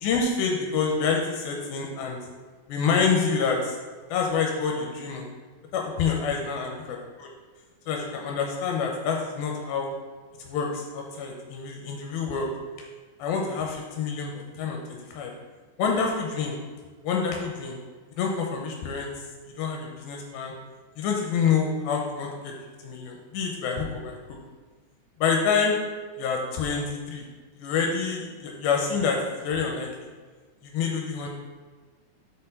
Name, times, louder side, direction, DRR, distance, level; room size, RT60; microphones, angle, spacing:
voice 1, 0.0-2.2 2.7-3.8 4.1-5.3 5.7-6.7 7.2-7.3 7.9-9.9 10.4-12.5 13.2-14.8 15.1-15.3 15.8-16.5 17.0-17.8 18.1-19.1 19.6-20.5 21.0-22.5 22.8-24.2 25.2-25.8 26.2-27.3 27.6-29.9 30.6-31.3, left 5 dB, 90° left, 0 dB, 2.5 m, -27 dB
5.7 x 4.4 x 5.4 m, 1.4 s
omnidirectional pair, 4.2 m